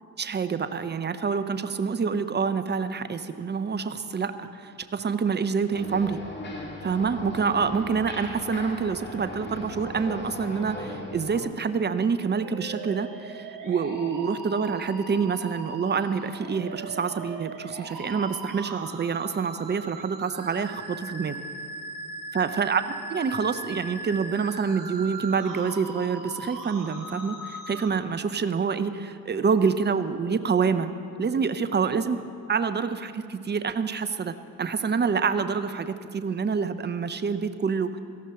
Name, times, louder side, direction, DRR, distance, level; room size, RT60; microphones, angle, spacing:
voice 1, 0.2-6.2 6.8-21.4 22.3-30.9 31.2-32.2 32.5-38.0, right 5 dB, 25° right, 11 dB, 0.8 m, -27 dB
sound 1, 5.7-11.4, left 2 dB, 25° left, 2.6 m, -38 dB
sound 2, 12.4-27.9, right 3 dB, 45° right, 2.7 m, -39 dB
17.5 x 13.5 x 3.9 m, 2.4 s
hypercardioid pair, 45°, 45 cm